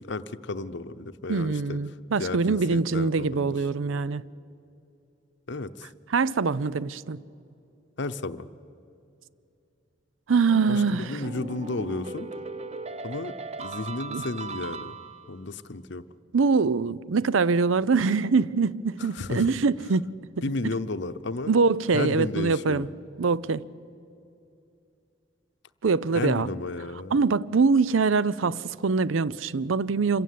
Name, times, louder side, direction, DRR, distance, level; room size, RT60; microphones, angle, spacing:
voice 1, 0.0-1.8 2.2-3.5 5.5-5.9 8.0-8.5 10.7-12.3 13.0-15.0 15.3-16.0 19.0-19.5 20.4-21.6 21.9-22.9 26.1-27.2, left 2 dB, 60° left, 0.8 m, -33 dB
voice 2, 1.3-4.2 6.1-7.2 10.3-11.2 14.1-14.2 16.3-20.1 21.5-22.9 23.2-23.6 25.8-26.5 27.1-30.2, right 4 dB, 85° right, 0.6 m, -24 dB
sound 1, 10.5-15.4, right 3 dB, 35° right, 0.7 m, -38 dB
27.0 x 16.0 x 9.3 m
head